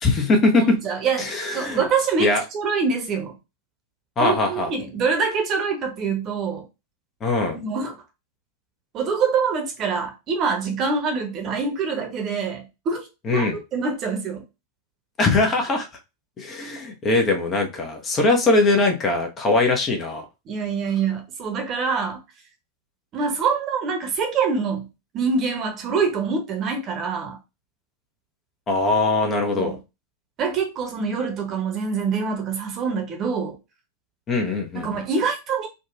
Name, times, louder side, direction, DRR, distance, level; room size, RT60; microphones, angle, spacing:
voice 1, 0.0-0.8 1.2-1.8 2.2-2.4 4.2-4.7 7.2-7.6 13.3-13.6 15.2-15.9 16.4-20.2 28.7-29.8 34.3-35.0, left 2 dB, 25° left, 0.8 m, -21 dB
voice 2, 0.8-3.3 4.2-6.7 7.5-7.9 8.9-14.4 20.5-22.2 23.1-24.9 25.1-27.4 29.6-29.8 30.4-33.6 34.7-35.7, right 5 dB, 35° right, 0.9 m, -25 dB
3.8 x 2.4 x 2.4 m
figure-of-eight pair, 90°, 0 cm